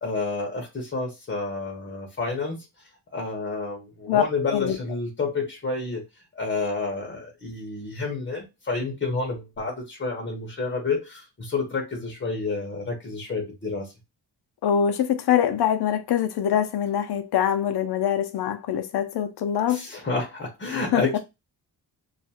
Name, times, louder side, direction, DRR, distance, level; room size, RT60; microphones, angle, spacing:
voice 1, 0.0-2.6 3.1-6.0 6.3-13.9 19.7-21.2, left 3 dB, 30° left, 0.6 m, -29 dB
voice 2, 14.6-19.8 20.7-21.0, left 9 dB, 70° left, 0.5 m, -24 dB
2.4 x 2.3 x 2.7 m
wide cardioid pair, 155°, 40 cm